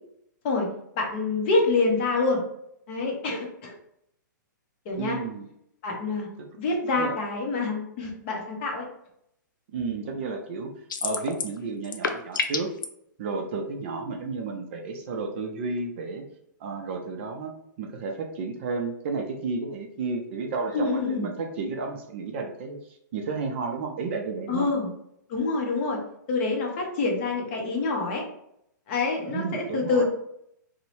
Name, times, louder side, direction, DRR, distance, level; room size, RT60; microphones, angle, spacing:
voice 1, 1.0-2.4 2.9-3.7 4.9-5.2 5.8-6.3 6.6-8.9 20.7-21.3 24.5-24.9 25.3-26.0 26.3-28.3 28.9-30.0, left 3 dB, 35° left, 1 dB, 0.7 m, -26 dB
voice 2, 5.0-5.5 6.9-7.1 9.7-10.7 11.0-12.7 13.2-16.2 16.6-17.5 17.8-24.7 29.2-30.0, right 4 dB, 35° right, 2 dB, 0.4 m, -32 dB
sound 1, 10.9-11.6 11.8-12.9, left 5 dB, 90° left, 0.4 m, -28 dB
2.6 x 2.0 x 3.0 m, 0.75 s
hypercardioid pair, 155°, 11 cm